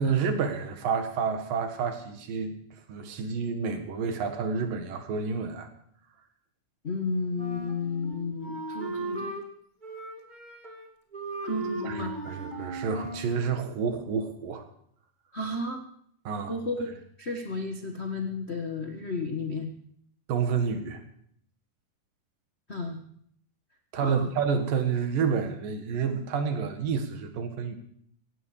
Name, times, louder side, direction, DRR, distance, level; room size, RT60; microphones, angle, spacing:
voice 1, 0.0-2.6 2.9-5.7 11.8-14.7 16.3-16.6 20.3-21.0 23.9-27.8, right 6 dB, 90° right, 7 dB, 3.5 m, -29 dB
voice 2, 6.8-9.4 11.4-12.1 15.3-15.8 16.5-19.7 22.7-23.0 24.0-24.3, left 3 dB, 60° left, 2 dB, 0.6 m, -33 dB
Wind instrument woodwind instrument, 7.4-9.5 9.8-10.9 11.1-13.3, right 1 dB, 15° right, 1.9 m, -37 dB
17.0 x 16.5 x 5.0 m, 0.64 s
omnidirectional pair, 3.8 m